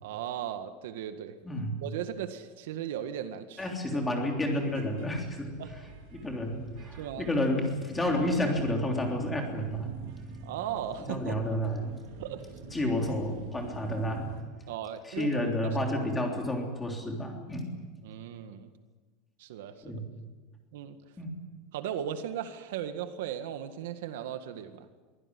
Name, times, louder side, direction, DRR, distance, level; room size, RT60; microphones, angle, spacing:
voice 1, 0.0-1.3 1.8-3.7 5.6-5.7 6.9-7.3 10.4-11.4 12.2-12.4 14.7-15.8 18.0-18.7 19.4-19.7 20.7-21.0 21.7-24.9, right 10 dB, 80° right, 9 dB, 1.8 m, -37 dB
voice 2, 1.4-1.8 3.6-5.6 6.1-9.9 11.1-11.9 12.7-14.3 15.0-17.7 19.8-20.0 21.2-21.4, left 1 dB, 10° left, 1 dB, 3.3 m, -30 dB
sound 1, 4.5-14.4, right 5 dB, 55° right, 4.1 m, -46 dB
23.5 x 16.0 x 9.8 m, 1.4 s
supercardioid pair, 180°, 0 cm